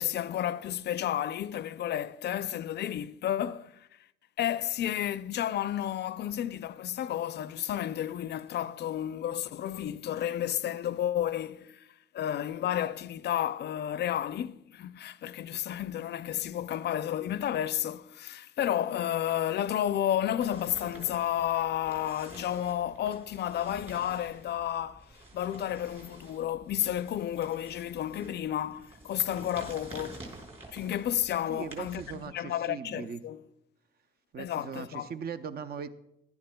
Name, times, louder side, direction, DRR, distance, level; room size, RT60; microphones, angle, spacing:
voice 1, 0.0-3.9 4.4-11.9 12.1-30.3 30.7-32.0 32.3-33.4 34.4-35.1, left 11 dB, 60° left, 0.4 m, -31 dB
sound 1, 20.4-32.3, right 2 dB, 30° right, 4.9 m, -49 dB
voice 2, 31.5-33.2 34.3-35.9, right 6 dB, 50° right, 0.6 m, -39 dB
16.5 x 12.0 x 2.2 m
cardioid pair, 90°, 20 cm